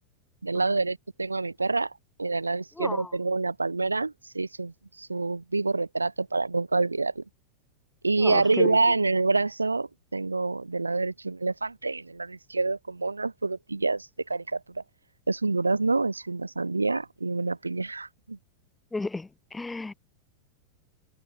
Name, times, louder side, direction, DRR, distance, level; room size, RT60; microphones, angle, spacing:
voice 1, 0.4-1.9 2.2-7.2 8.0-14.8 15.3-18.4, right 3 dB, 80° right, 3.0 m, -27 dB
voice 2, 2.8-3.1 8.2-8.8 18.9-19.9, left 3 dB, 10° left, 5.3 m, -33 dB
figure-of-eight pair, 90°, 0 cm